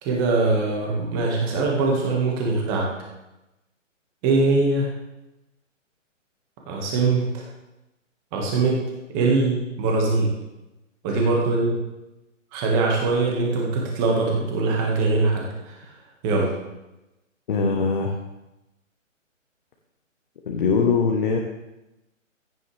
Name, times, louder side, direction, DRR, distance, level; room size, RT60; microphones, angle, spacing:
voice 1, 0.0-2.9 4.2-4.9 6.7-7.4 8.3-8.8 9.1-10.3 11.0-11.7 12.5-15.8 16.2-16.5, right 3 dB, 15° right, -1 dB, 1.8 m, -22 dB
voice 2, 17.5-18.2 20.5-21.4, left 5 dB, 40° left, 1 dB, 1.3 m, -22 dB
15.5 x 9.1 x 3.4 m, 0.97 s
hypercardioid pair, 160°, 39 cm